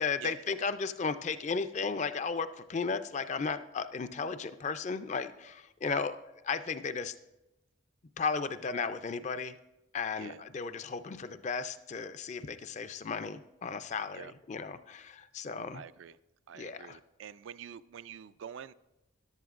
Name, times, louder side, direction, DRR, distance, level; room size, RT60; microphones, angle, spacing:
voice 1, 0.0-6.2 6.5-7.1 8.2-9.6 9.9-15.8 16.5-17.0, left 5 dB, 35° left, 12 dB, 0.4 m, -35 dB
voice 2, 15.7-16.2 16.5-18.7, right 8 dB, 70° right, 15 dB, 0.3 m, -46 dB
14.0 x 11.0 x 2.5 m, 0.96 s
head